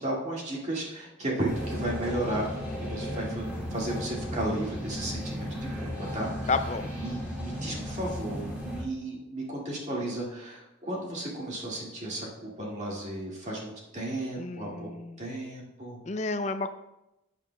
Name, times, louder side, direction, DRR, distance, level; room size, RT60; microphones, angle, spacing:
voice 1, 0.0-2.5 2.8-5.5 5.8-6.5 6.9-14.9 15.2-16.0, right 1 dB, 35° right, -3 dB, 2.0 m, -34 dB
sound 1, 1.4-8.8, equal, 10° right, 2.6 m, -35 dB
voice 2, 6.5-6.9 14.4-15.2 16.1-16.7, left 3 dB, 35° left, 9 dB, 0.5 m, -31 dB
14.0 x 8.4 x 2.3 m, 0.91 s
head